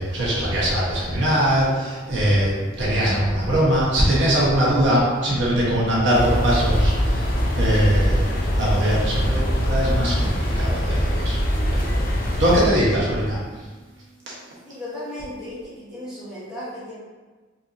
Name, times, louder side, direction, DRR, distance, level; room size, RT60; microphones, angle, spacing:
voice 1, 0.0-13.7 14.3-14.4, equal, 70° right, -7 dB, 1.0 m, -22 dB
sound 1, 6.1-12.7, equal, 50° left, 0.6 m, -22 dB
voice 2, 14.7-17.0, left 1 dB, 5° right, -10 dB, 1.0 m, -35 dB
4.2 x 2.6 x 2.5 m, 1.3 s
head